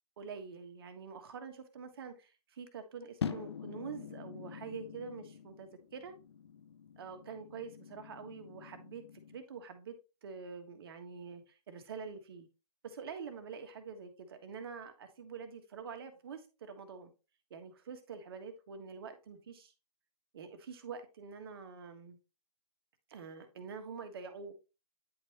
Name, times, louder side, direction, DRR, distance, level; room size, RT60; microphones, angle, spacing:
voice 1, 0.2-6.1 7.0-9.0 9.3-9.9 10.2-12.5 12.8-17.1 17.5-19.7 20.3-22.2 23.1-24.5, right 6 dB, 40° right, 1.5 m, -46 dB
sound 1, 3.2-9.4, left 7 dB, 40° left, 0.5 m, -45 dB
10.0 x 4.7 x 2.9 m
figure-of-eight pair, 135°, 20 cm